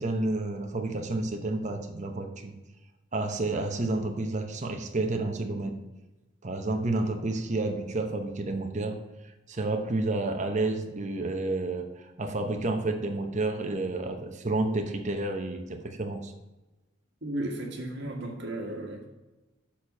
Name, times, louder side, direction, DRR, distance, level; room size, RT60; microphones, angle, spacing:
voice 1, 0.0-2.5 3.1-5.8 6.4-9.0 9.5-11.9 12.2-16.3, right 2 dB, 35° right, 5 dB, 0.9 m, -30 dB
voice 2, 17.2-19.1, right 1 dB, 60° right, 0 dB, 1.7 m, -34 dB
6.8 x 4.3 x 6.5 m, 1.1 s
head